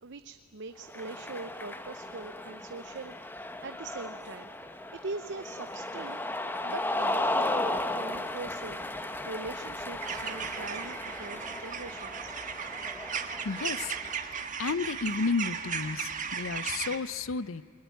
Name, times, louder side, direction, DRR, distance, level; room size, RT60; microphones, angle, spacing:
voice 1, 0.0-3.1 3.6-4.5 4.9-6.2 6.6-8.8 9.3-12.4, right 3 dB, 60° right, 10 dB, 0.7 m, -42 dB
Cheering, 0.8-14.3, left 1 dB, 10° left, 1.0 m, -35 dB
sound 1, 10.0-17.0, right 6 dB, 40° right, 1.5 m, -36 dB
voice 2, 13.4-13.9 14.6-17.6, left 4 dB, 85° left, 17 dB, 0.7 m, -32 dB
29.5 x 21.5 x 9.3 m, 2.4 s
head